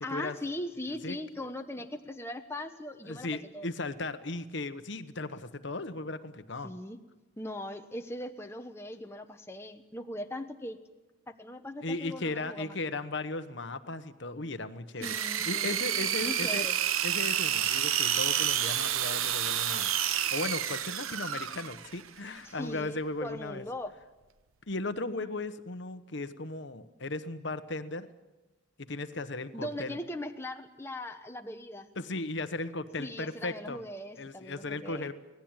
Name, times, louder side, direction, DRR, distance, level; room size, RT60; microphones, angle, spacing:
voice 1, 0.0-3.7 6.6-7.0 7.4-10.8 11.3-12.7 15.0-16.8 22.4-23.9 29.5-31.9 33.0-35.1, left 1 dB, 10° left, 5 dB, 0.9 m, -40 dB
voice 2, 3.1-6.7 11.8-15.1 15.5-16.7 17.0-19.9 20.3-23.6 24.7-28.1 28.8-30.0 32.0-33.8 34.2-35.1, left 2 dB, 55° left, 11 dB, 1.1 m, -36 dB
sound 1, 15.0-22.0, right 10 dB, 85° right, 0.9 m, -29 dB
25.5 x 18.0 x 8.9 m, 1.1 s
head